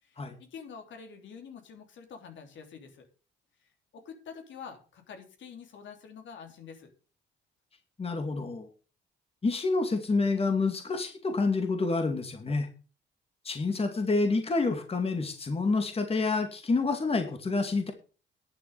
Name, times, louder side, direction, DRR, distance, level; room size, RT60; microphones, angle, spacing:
voice 1, 0.0-3.1 3.9-6.9, left 6 dB, 70° left, 4 dB, 3.2 m, -47 dB
voice 2, 8.0-8.7 9.4-12.7 13.4-17.9, left 3 dB, 30° left, 6 dB, 2.2 m, -28 dB
11.0 x 7.1 x 6.8 m, 0.36 s
cardioid pair, 90°, 20 cm